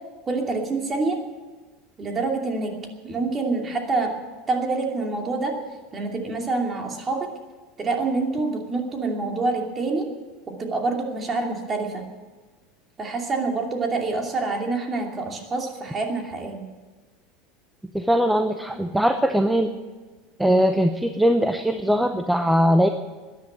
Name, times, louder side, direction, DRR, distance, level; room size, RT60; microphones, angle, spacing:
voice 1, 0.3-1.2 2.0-2.7 3.0-4.1 4.5-5.6 5.9-7.3 7.8-10.1 10.5-12.0 13.0-16.6, right 3 dB, 25° right, 2 dB, 2.7 m, -26 dB
voice 2, 17.9-19.8 20.4-22.9, equal, 5° right, 7 dB, 0.7 m, -20 dB
13.5 x 10.5 x 9.2 m, 1.3 s
supercardioid pair, 130°, 0 cm